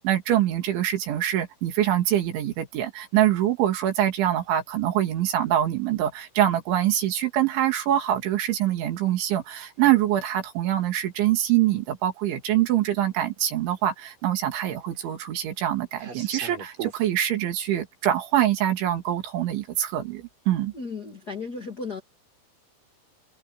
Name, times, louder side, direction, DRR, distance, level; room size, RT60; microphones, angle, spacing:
voice 1, 0.0-20.7, right 12 dB, 70° right, 4.8 m, -24 dB
sound 1, 10.4-10.5 11.8-11.9 12.4-12.5 12.8-13.5 13.8-17.0, right 7 dB, 45° right, 6.9 m, -39 dB
voice 2, 20.7-22.0, left 4 dB, 65° left, 0.9 m, -34 dB
omnidirectional pair, 5.7 m